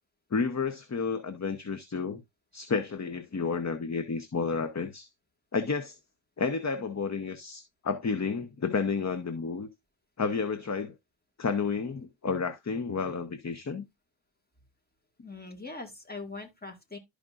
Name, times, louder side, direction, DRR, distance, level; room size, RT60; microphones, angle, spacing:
voice 1, 0.3-2.2 2.5-5.1 5.5-6.0 6.4-9.7 10.2-10.9 11.4-13.8, left 5 dB, 35° left, 0.9 m, -31 dB
voice 2, 15.2-17.0, left 3 dB, 20° left, 2.1 m, -41 dB
12.5 x 5.1 x 2.5 m
wide cardioid pair, 85°, 46 cm